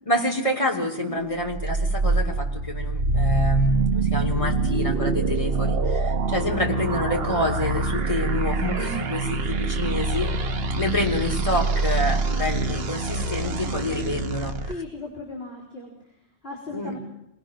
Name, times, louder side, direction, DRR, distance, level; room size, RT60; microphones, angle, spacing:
voice 1, 0.0-10.5 10.8-14.7 16.7-16.9, left 1 dB, 30° left, 1 dB, 3.4 m, -28 dB
sound 1, 1.5-14.7, right 3 dB, 65° right, 1.3 m, -25 dB
voice 2, 6.2-6.7 12.0-12.8 13.4-14.2 14.7-17.0, left 2 dB, 65° left, -2 dB, 4.6 m, -38 dB
26.0 x 19.0 x 6.3 m, 0.83 s
omnidirectional pair, 1.1 m